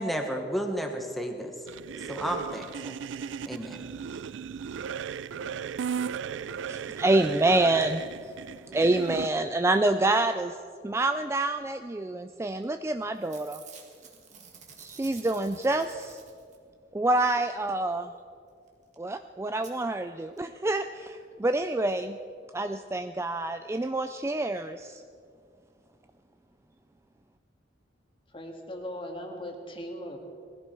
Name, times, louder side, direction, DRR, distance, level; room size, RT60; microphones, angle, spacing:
voice 1, 0.0-1.6 2.0-3.0 3.4-3.8, equal, ahead, 3 dB, 1.4 m, -32 dB
sound 1, 1.7-9.3, right 7 dB, 85° right, 0.4 m, -36 dB
voice 2, 6.3-8.4 8.6-10.6 10.8-13.6 14.8-16.2 16.9-18.1 19.0-22.2 22.5-25.0, right 2 dB, 15° right, 8 dB, 0.3 m, -27 dB
Packing tape duct tape / Tearing, 12.6-12.9 13.1-16.7 18.7-18.8 18.9-19.0 19.6-19.7 20.4-20.5 20.7-20.8, right 6 dB, 40° right, 1.9 m, -50 dB
voice 3, 28.3-30.2, equal, 30° left, 3 dB, 1.9 m, -38 dB
20.0 x 15.5 x 4.6 m, 2.3 s
head